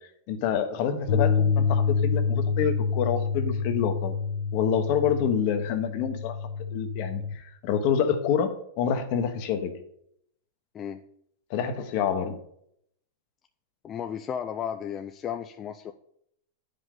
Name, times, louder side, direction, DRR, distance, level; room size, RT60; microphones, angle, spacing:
voice 1, 0.3-4.2 4.5-6.4 6.7-9.7 11.5-12.4, left 7 dB, 55° left, 8 dB, 1.1 m, -27 dB
sound 1, 1.1-7.3, left 5 dB, 75° left, 1.1 m, -27 dB
voice 2, 13.8-15.9, left 8 dB, 30° left, 6 dB, 0.4 m, -34 dB
9.5 x 5.1 x 3.8 m, 0.72 s
hypercardioid pair, 125°, 0 cm